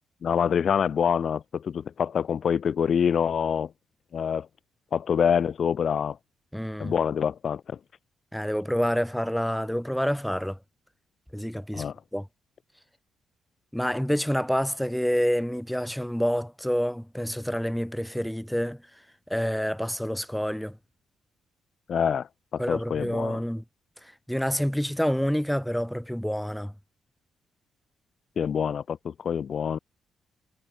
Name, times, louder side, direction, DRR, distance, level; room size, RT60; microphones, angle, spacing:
voice 1, 0.2-3.7 4.1-4.5 4.9-6.2 6.8-7.8 11.7-11.9 21.9-23.4 28.4-29.8, left 7 dB, 45° left, 0.9 m, -26 dB
voice 2, 6.5-6.9 8.3-10.6 11.3-11.9 12.1-12.3 13.7-18.8 19.3-20.8 22.6-23.6 24.0-26.7, equal, ahead, 1.4 m, -28 dB
cardioid pair, 145°, 0 cm